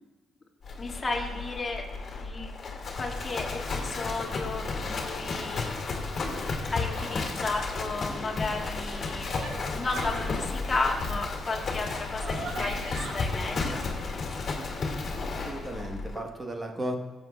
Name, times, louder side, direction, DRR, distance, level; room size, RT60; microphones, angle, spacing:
Livestock farm animals working animals, 0.6-16.2, left 3 dB, 50° left, 2.1 m, -33 dB
voice 1, 0.8-1.9 2.2-2.5 2.9-6.0 6.7-13.8, left 3 dB, 30° left, -1 dB, 2.0 m, -34 dB
sound 1, 6.8-7.3 8.7-10.2 11.7-11.8 12.2-13.1, right 3 dB, 75° right, 1.8 m, -39 dB
voice 2, 15.3-16.9, right 1 dB, 20° right, 3 dB, 1.2 m, -35 dB
15.0 x 7.6 x 2.3 m, 1.2 s
cardioid pair, 90°, 0 cm